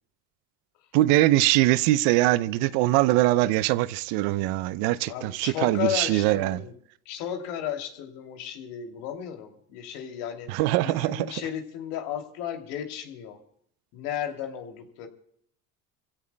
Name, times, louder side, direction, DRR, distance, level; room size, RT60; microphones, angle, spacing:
voice 1, 0.9-6.6 10.5-11.3, right 17 dB, 65° right, 0.8 m, -22 dB
voice 2, 5.1-6.7 7.0-13.4 13.9-15.1, left 10 dB, 70° left, 2.9 m, -34 dB
27.0 x 16.5 x 2.2 m
hypercardioid pair, 80°, 42 cm